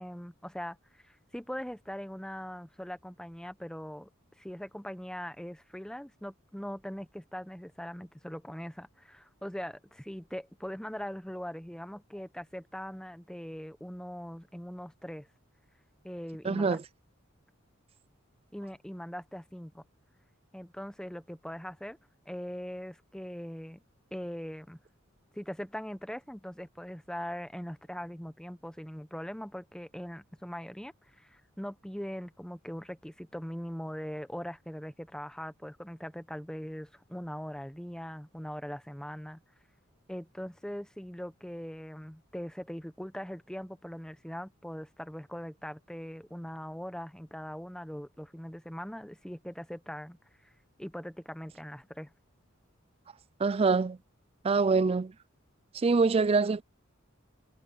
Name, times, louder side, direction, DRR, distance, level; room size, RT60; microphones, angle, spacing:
voice 1, 0.0-4.1 4.4-15.3 16.0-16.8 18.5-19.8 20.5-22.0 22.3-23.8 24.1-24.8 25.3-39.4 40.1-50.2 50.8-52.1, equal, 5° left, 0.9 m, -41 dB
voice 2, 16.4-16.8 53.4-54.0 54.4-55.1 55.7-56.6, right 4 dB, 30° right, 0.4 m, -25 dB
head